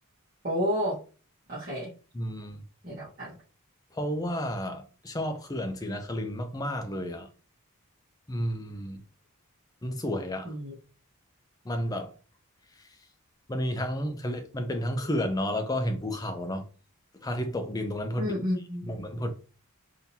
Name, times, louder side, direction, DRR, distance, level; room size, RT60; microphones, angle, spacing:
voice 1, 0.4-1.0 1.5-1.9 2.8-3.3 10.4-10.7 18.2-19.0, equal, 40° right, 1.3 m, -31 dB
voice 2, 2.1-2.6 3.9-7.3 8.3-9.0 9.8-10.5 11.6-12.1 13.5-16.6 17.1-18.3 18.8-19.3, equal, 15° left, 0.5 m, -31 dB
3.7 x 2.8 x 2.8 m
head